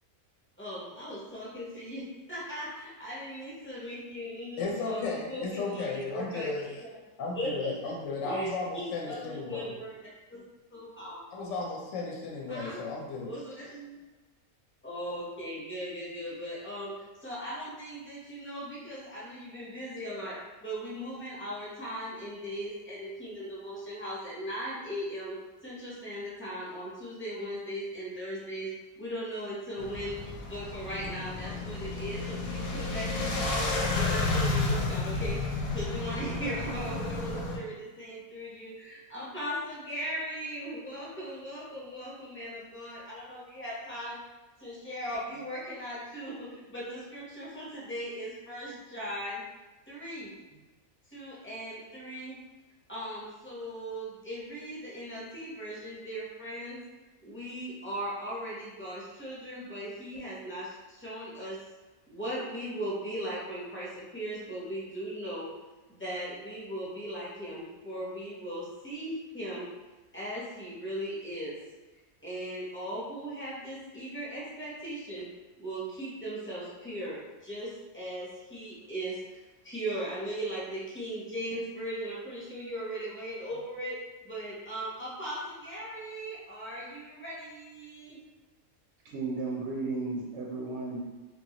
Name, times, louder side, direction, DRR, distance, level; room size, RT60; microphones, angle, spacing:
voice 1, 0.6-6.5 7.3-7.7 8.2-8.5 8.7-9.9 10.3-10.4 10.7-11.2 12.5-12.8 13.2-13.9 14.8-16.9 17.2-25.4 25.6-28.7 29.0-44.2 44.6-49.4 49.9-50.6 51.1-52.4 52.9-56.8 57.2-61.6 62.1-65.5 65.9-69.7 70.1-71.6 72.2-75.3 75.6-79.4 79.6-84.0 84.2-88.2, equal, 10° left, -8 dB, 0.6 m, -38 dB
voice 2, 4.6-6.8 7.2-9.7 11.3-13.4, left 3 dB, 70° left, -2 dB, 0.8 m, -35 dB
sound 1, 29.8-37.6, left 3 dB, 90° left, 1.1 m, -31 dB
voice 3, 89.0-91.0, right 3 dB, 65° right, -3 dB, 0.7 m, -34 dB
2.9 x 2.3 x 2.8 m, 1.2 s
omnidirectional pair, 1.5 m